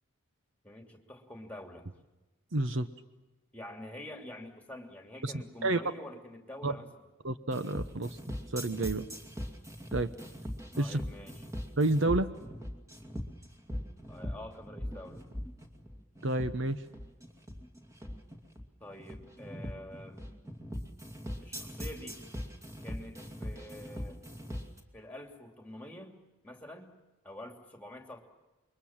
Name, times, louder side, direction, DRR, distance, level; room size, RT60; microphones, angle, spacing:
voice 1, 0.6-1.9 3.5-6.9 10.8-11.4 14.1-15.3 18.8-20.3 21.4-22.2 22.8-24.2 24.9-26.9 27.2-28.2, left 1 dB, 5° left, 3 dB, 2.8 m, -47 dB
voice 2, 2.5-2.9 5.2-5.8 6.6-6.7 7.2-9.0 9.9-10.1 10.8-11.0 11.8-12.3 16.2-16.8, right 2 dB, 60° right, 10 dB, 1.0 m, -30 dB
sound 1, 7.5-24.8, equal, 15° right, 2.4 m, -41 dB
28.0 x 23.0 x 7.4 m, 1.1 s
head